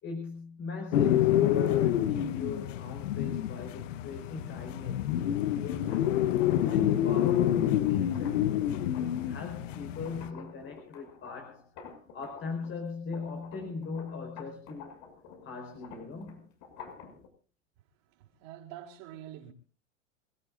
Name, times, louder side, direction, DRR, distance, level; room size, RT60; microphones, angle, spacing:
voice 1, 0.0-6.1 6.6-11.7 12.1-15.0 15.4-16.5, left 4 dB, 30° left, 4.6 m, -40 dB
sound 1, 0.9-10.3, left 11 dB, 70° left, 1.0 m, -28 dB
sound 2, 5.9-12.8 13.1-17.3, left 6 dB, 50° left, 7.0 m, -50 dB
voice 2, 17.8-19.5, right 11 dB, 55° right, 4.9 m, -47 dB
28.0 x 15.5 x 2.6 m
hypercardioid pair, 110°, 39 cm